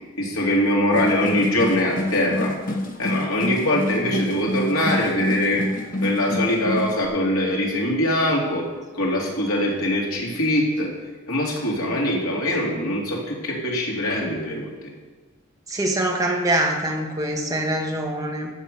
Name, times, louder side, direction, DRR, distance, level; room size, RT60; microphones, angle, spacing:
voice 1, 0.2-2.6 3.0-5.6 6.0-8.7 8.9-10.9 11.3-14.7, left 1 dB, 80° left, -2 dB, 3.1 m, -22 dB
sound 1, 0.9-7.1, left 1 dB, 40° left, 1.2 m, -28 dB
voice 2, 15.7-18.5, right 1 dB, 15° right, 1 dB, 1.3 m, -24 dB
15.5 x 6.1 x 6.9 m, 1.3 s
head